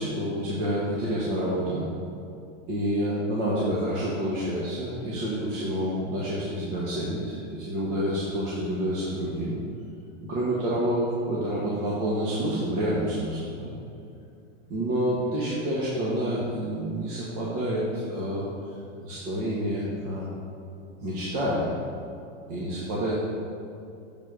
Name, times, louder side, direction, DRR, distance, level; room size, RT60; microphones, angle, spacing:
voice 1, 0.0-1.9 2.7-9.6 10.2-13.7 14.7-18.8 19.0-20.3 21.0-21.7 22.5-23.1, equal, 50° right, -7 dB, 1.6 m, -28 dB
7.2 x 4.3 x 6.2 m, 2.6 s
supercardioid pair, 155°, 37 cm